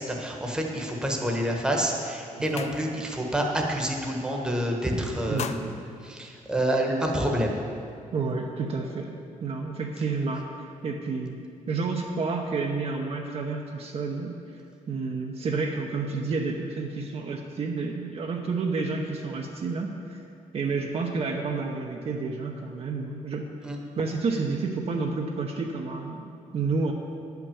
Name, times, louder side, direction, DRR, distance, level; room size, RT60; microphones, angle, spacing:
voice 1, 0.0-5.7 6.0-7.6 23.6-23.8, right 1 dB, 5° right, 0 dB, 1.1 m, -28 dB
sound 1, 1.6-1.8 2.1-3.3 3.6-3.9 4.2-4.8 5.1-7.0, left 7 dB, 55° left, 0.5 m, -40 dB
voice 2, 5.3-5.8 8.1-9.1 9.4-10.5 10.8-11.4 11.7-14.6 14.9-20.2 20.5-23.5 24.0-26.9, right 4 dB, 50° right, 1 dB, 0.8 m, -30 dB
9.5 x 5.9 x 7.0 m, 2.4 s
cardioid pair, 140°, 13 cm